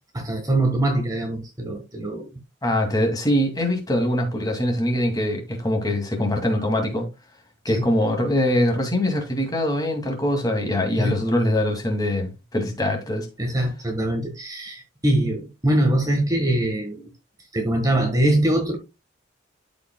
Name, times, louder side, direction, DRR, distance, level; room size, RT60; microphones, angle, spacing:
voice 1, 0.1-2.3 7.7-7.8 11.0-11.2 13.4-17.1 17.5-18.8, right 1 dB, 15° right, 1.4 m, -23 dB
voice 2, 2.6-7.1 7.6-13.3, left 1 dB, 20° left, 2.2 m, -23 dB
13.5 x 5.1 x 2.2 m
head